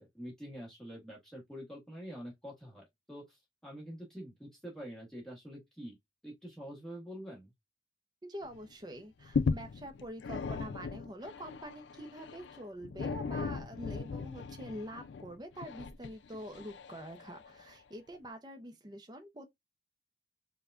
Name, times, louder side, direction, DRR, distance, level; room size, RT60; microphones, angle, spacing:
voice 1, 0.0-6.0 6.2-7.5, equal, 5° left, 1.2 m, -46 dB
voice 2, 8.2-19.5, equal, 25° right, 0.6 m, -46 dB
sound 1, 8.4-8.7 9.0-17.6 18.2-18.3, left 5 dB, 80° left, 0.4 m, -38 dB
4.6 x 2.3 x 2.4 m
head